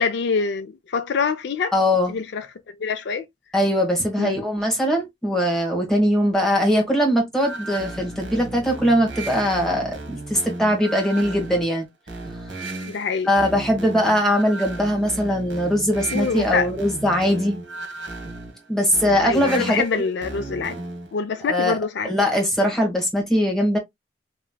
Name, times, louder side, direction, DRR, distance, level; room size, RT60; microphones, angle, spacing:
voice 1, 0.0-1.7 2.1-2.5 2.8-3.3 4.2-4.4 12.8-13.3 16.1-16.7 19.2-20.8 21.1-22.1, left 5 dB, 65° left, 0.4 m, -25 dB
voice 2, 1.7-2.2 3.5-11.9 13.2-17.6 18.7-20.1 21.4-21.8 22.0-23.8, equal, 5° left, 1.3 m, -21 dB
sound 1, 7.3-21.1, right 2 dB, 80° right, 1.2 m, -35 dB
3.2 x 2.9 x 2.2 m
head